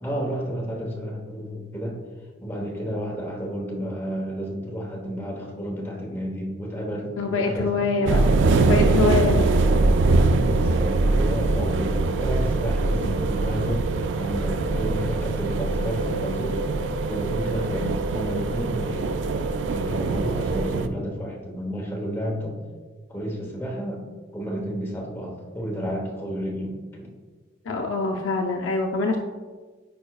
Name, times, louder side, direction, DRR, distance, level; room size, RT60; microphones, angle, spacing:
voice 1, 0.0-2.0 2.4-7.7 8.0-8.3 8.8-9.2 10.0-13.9 14.2-16.6 17.1-22.6 23.1-24.0 24.3-27.1, equal, 10° left, -1 dB, 0.9 m, -31 dB
Singing, 6.7-15.6, right 2 dB, 60° left, 1.4 m, -45 dB
voice 2, 7.2-8.2 8.6-9.4 17.8-17.9 27.7-29.2, left 3 dB, 85° left, 2 dB, 0.5 m, -24 dB
sound 1, 8.1-20.9, right 3 dB, 70° right, 0.3 m, -23 dB
9.3 x 4.5 x 2.3 m, 1.4 s
head